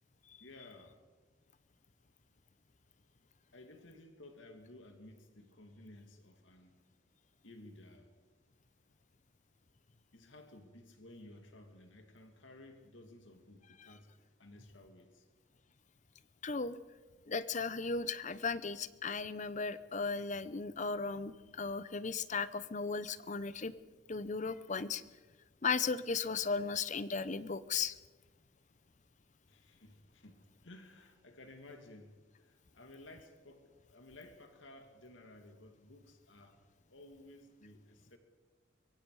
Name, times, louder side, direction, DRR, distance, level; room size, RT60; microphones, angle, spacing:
voice 1, 0.4-1.0 3.5-6.8 7.4-8.1 10.1-14.1 14.4-15.3 29.5-36.6 36.9-38.2, left 2 dB, 85° left, 5 dB, 2.3 m, -56 dB
voice 2, 16.4-16.8 17.3-23.7 24.1-25.0 25.6-28.0, left 5 dB, 40° left, 15 dB, 0.7 m, -36 dB
25.0 x 22.5 x 4.8 m, 1.3 s
head